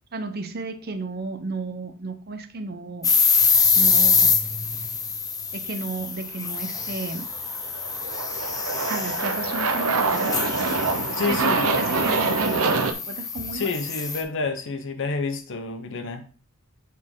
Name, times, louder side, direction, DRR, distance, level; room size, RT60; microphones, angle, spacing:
voice 1, 0.1-3.1 3.8-4.3 5.5-7.3 8.8-10.6 11.2-12.7 13.1-13.7, right 3 dB, 45° right, 7 dB, 0.8 m, -33 dB
sound 1, 3.0-14.2, left 5 dB, 15° left, 0.7 m, -25 dB
Aircraft, 7.2-12.9, right 4 dB, 75° right, 0.7 m, -25 dB
voice 2, 11.1-11.8 13.5-16.2, left 4 dB, 60° left, 8 dB, 0.8 m, -29 dB
7.5 x 4.2 x 3.7 m, 0.38 s
head